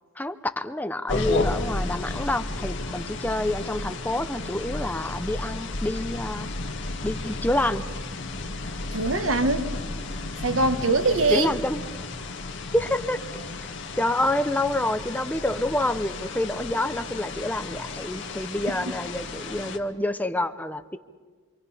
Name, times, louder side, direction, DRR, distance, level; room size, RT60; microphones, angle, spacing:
voice 1, 0.2-6.5 7.0-7.8 11.3-11.8 12.7-13.7 14.0-21.0, left 1 dB, 10° left, 0.7 m, -27 dB
sound 1, 1.1-19.8, left 2 dB, 65° left, 1.8 m, -33 dB
voice 2, 8.9-9.8 10.4-11.5 18.7-18.8, right 2 dB, 80° right, 1.5 m, -23 dB
27.0 x 26.5 x 5.6 m
head